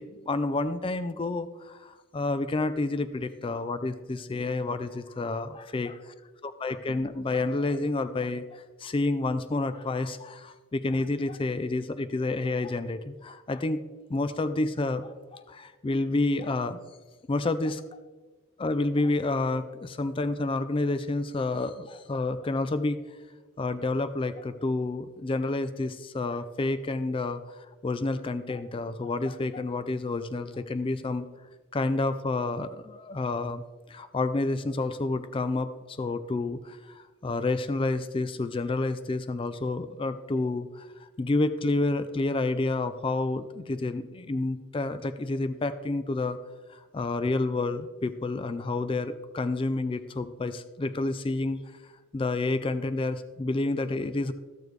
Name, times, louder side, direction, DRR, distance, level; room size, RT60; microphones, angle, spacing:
voice 1, 0.0-5.9 6.4-13.8 14.1-16.8 17.3-18.0 18.6-23.0 23.6-31.3 31.7-33.6 33.9-46.4 46.7-51.6 52.1-54.3, left 2 dB, 25° left, 12 dB, 0.3 m, -29 dB
14.0 x 6.9 x 3.2 m, 1.3 s
head